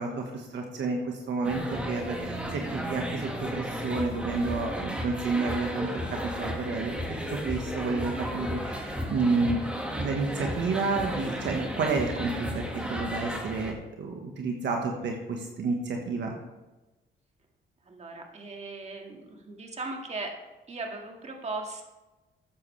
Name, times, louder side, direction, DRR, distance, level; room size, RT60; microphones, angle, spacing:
voice 1, 0.0-6.9 7.3-9.6 10.0-16.3, right 4 dB, 65° right, 1 dB, 1.5 m, -30 dB
sound 1, 1.4-13.7, equal, 5° right, 1.8 m, -34 dB
voice 2, 17.9-20.3 20.7-21.8, right 3 dB, 35° right, 2 dB, 2.0 m, -38 dB
13.5 x 9.6 x 3.4 m, 1.1 s
cardioid pair, 90°, 20 cm